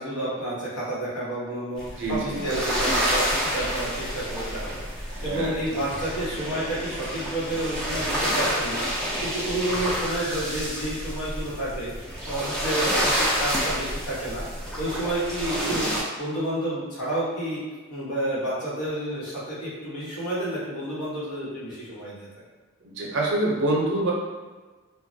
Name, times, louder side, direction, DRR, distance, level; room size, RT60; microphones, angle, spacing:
voice 1, 0.0-8.9 9.2-11.9 12.2-14.4 14.8-15.9 16.2-17.6 17.9-22.3, right 1 dB, 90° left, -8 dB, 1.1 m, -30 dB
sound 1, 1.8-16.0, equal, 5° left, 0.3 m, -29 dB
voice 2, 2.0-2.4 5.1-5.6 15.5-15.9 22.8-24.1, right 2 dB, 55° right, -2 dB, 0.5 m, -26 dB
3.0 x 2.2 x 2.6 m, 1.3 s
head